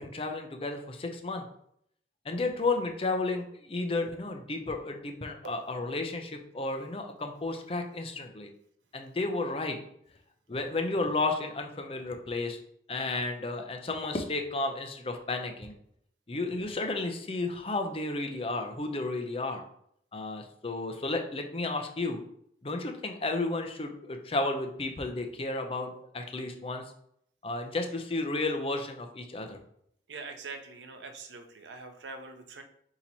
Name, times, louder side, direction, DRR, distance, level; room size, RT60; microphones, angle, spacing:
voice 1, 0.0-1.4 2.3-8.5 8.9-9.8 10.5-12.6 12.9-15.7 16.3-19.6 20.1-22.2 22.6-26.8 27.4-29.6, left 2 dB, 30° left, 5 dB, 0.5 m, -32 dB
voice 2, 30.1-32.6, right 4 dB, 90° right, 6 dB, 0.6 m, -43 dB
4.3 x 2.9 x 4.0 m, 0.70 s
head